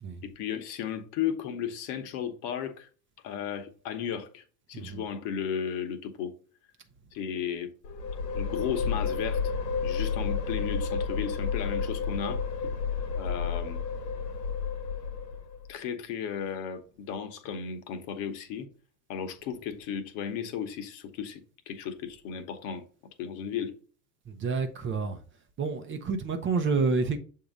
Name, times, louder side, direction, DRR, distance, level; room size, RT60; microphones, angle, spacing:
voice 1, 0.2-2.9 3.2-4.4 4.7-6.3 7.1-7.7 8.3-9.5 9.8-12.4 13.1-13.8 15.7-18.7 19.1-22.9 23.2-23.8, left 8 dB, 55° left, 1.1 m, -34 dB
sound 1, 7.8-15.7, left 5 dB, 90° left, 1.1 m, -31 dB
voice 2, 24.3-25.2 25.6-27.2, right 4 dB, 25° right, 0.7 m, -29 dB
6.9 x 2.8 x 5.0 m
hypercardioid pair, 100°, 48 cm